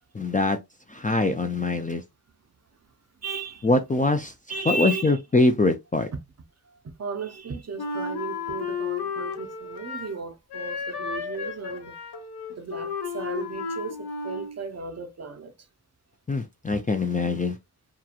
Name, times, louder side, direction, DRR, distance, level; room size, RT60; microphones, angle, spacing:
voice 1, 0.1-0.6 0.9-2.0 3.6-4.3 4.7-6.1 16.3-17.6, left 2 dB, 20° left, 0.4 m, -23 dB
voice 2, 3.2-3.7 4.5-5.2 6.1-6.2 6.6-12.0 12.5-15.7, right 4 dB, 40° right, 0.6 m, -35 dB
Wind instrument woodwind instrument, 7.8-10.2 10.5-14.6, left 5 dB, 70° left, 0.7 m, -33 dB
2.9 x 2.3 x 2.4 m
wide cardioid pair, 75°, 41 cm